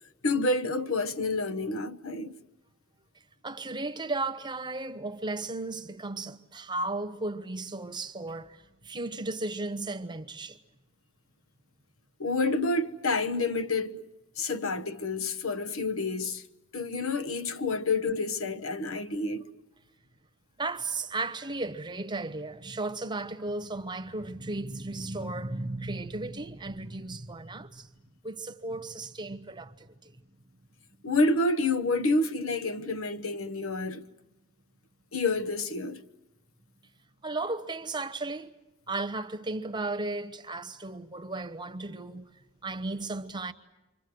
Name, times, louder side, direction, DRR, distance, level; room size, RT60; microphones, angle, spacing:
voice 1, 0.2-2.3 12.2-14.0 14.4-16.4 16.7-19.5 31.0-34.0 35.1-36.0, left 2 dB, 70° left, 1.1 m, -28 dB
voice 2, 3.4-10.6 20.6-27.9 28.2-30.2 37.2-38.5 38.9-42.3 42.6-43.5, right 2 dB, 20° right, 1.1 m, -35 dB
28.5 x 25.0 x 7.9 m
head